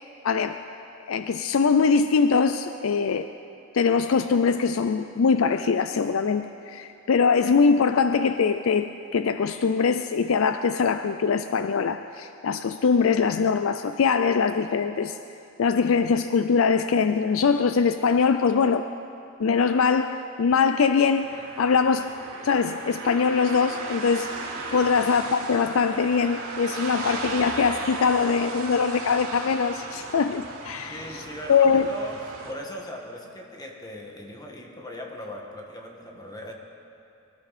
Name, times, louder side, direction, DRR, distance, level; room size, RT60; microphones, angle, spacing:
voice 1, 0.2-0.6 1.1-3.3 3.7-15.2 15.6-18.9 19.4-21.3 21.6-22.1 22.4-24.3 24.7-31.2 31.5-31.9, left 5 dB, 80° left, 9 dB, 0.5 m, -22 dB
sound 1, 21.1-32.5, right 3 dB, 80° right, 3.3 m, -36 dB
voice 2, 30.9-36.5, left 1 dB, 20° left, 1 dB, 1.7 m, -39 dB
24.5 x 13.0 x 4.2 m, 2.6 s
head